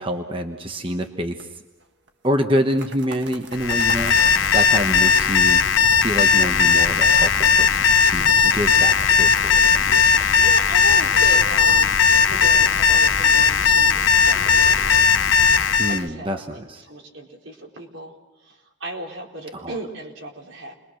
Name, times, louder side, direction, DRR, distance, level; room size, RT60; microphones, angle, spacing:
voice 1, 0.0-1.5 2.2-5.6 6.0-10.3 15.8-16.8 19.5-19.7, equal, 25° right, 5 dB, 1.1 m, -27 dB
sound 1, 1.4-2.1 2.5-15.0, right 3 dB, 65° right, 1.7 m, -42 dB
Alarm, 3.5-16.0, left 6 dB, 80° left, 0.8 m, -17 dB
voice 2, 10.1-12.0 12.3-14.8 15.6-18.1 18.4-20.7, right 1 dB, 80° right, 0 dB, 4.2 m, -36 dB
29.0 x 22.0 x 6.4 m, 0.99 s
head